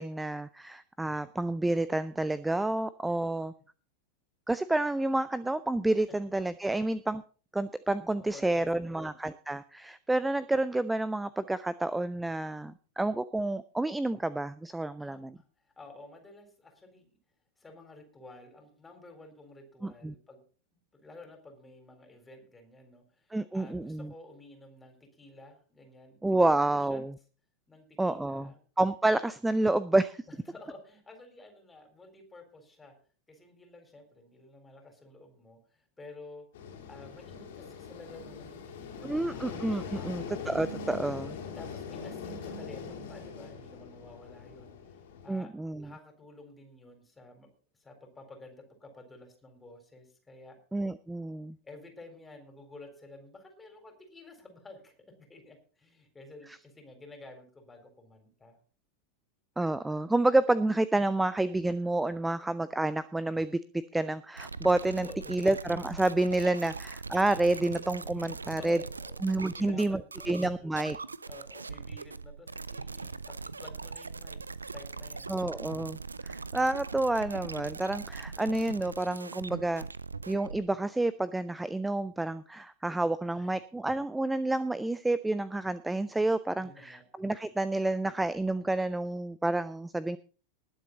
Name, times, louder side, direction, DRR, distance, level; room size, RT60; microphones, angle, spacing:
voice 1, 0.0-3.5 4.5-7.2 7.5-15.3 19.8-20.1 23.3-24.1 26.2-27.1 28.0-28.5 28.8-30.2 39.0-41.4 45.3-45.9 50.7-51.6 59.6-63.6 63.9-68.8 69.2-70.0 70.3-71.0 75.3-76.0 76.2-79.9 80.3-90.2, right 2 dB, 5° right, 17 dB, 0.5 m, -29 dB
voice 2, 8.3-9.2 15.0-17.1 17.6-20.4 20.9-27.0 27.7-28.6 30.5-32.9 33.3-36.5 36.9-40.2 41.5-45.0 45.2-47.5 47.7-50.6 51.6-58.6 65.0-65.4 68.1-69.2 69.5-70.7 71.3-74.4 74.7-75.4 83.3-83.6 86.6-87.1, left 2 dB, 10° left, 5 dB, 4.0 m, -52 dB
sound 1, 36.5-45.3, left 5 dB, 55° left, 3.0 m, -42 dB
sound 2, 64.4-80.6, right 4 dB, 75° right, 0.5 m, -41 dB
20.0 x 7.6 x 4.0 m, 0.39 s
figure-of-eight pair, 90°, 0 cm